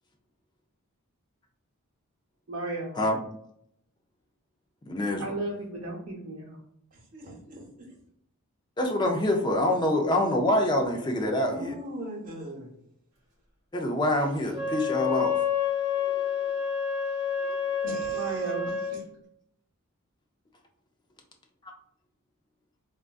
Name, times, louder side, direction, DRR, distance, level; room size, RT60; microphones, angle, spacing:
voice 1, 2.5-3.0 5.2-6.6 18.1-18.7, right 2 dB, 65° right, -2 dB, 1.0 m, -34 dB
voice 2, 4.9-5.4 8.8-11.8 13.7-15.4 21.6-21.7, left 1 dB, 20° left, 2 dB, 0.4 m, -26 dB
voice 3, 6.9-7.6 11.5-12.7 15.9-16.5 17.4-19.0, equal, 35° right, -3 dB, 1.0 m, -41 dB
Wind instrument woodwind instrument, 14.5-19.0, left 6 dB, 20° right, 1.2 m, -28 dB
3.5 x 2.5 x 2.3 m, 0.72 s
head